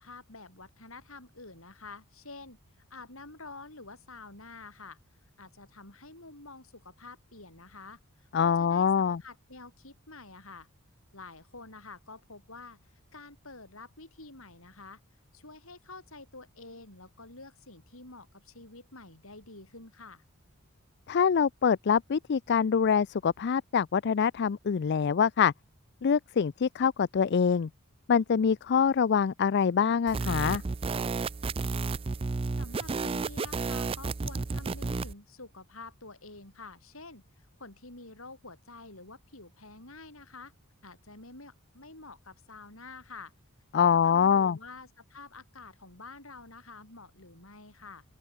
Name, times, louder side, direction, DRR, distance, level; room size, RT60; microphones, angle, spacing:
voice 1, 0.0-2.6 2.9-5.0 5.4-10.7 11.1-15.0 15.3-20.2 32.6-37.2 37.6-40.5 40.8-43.3 43.7-48.0, left 3 dB, 65° left, 7.6 m, -48 dB
voice 2, 8.3-9.2 21.1-25.5 26.0-27.7 28.1-30.6 43.7-44.6, left 7 dB, 50° left, 0.4 m, -25 dB
sound 1, 30.1-35.1, right 3 dB, 25° right, 0.4 m, -32 dB
open air
head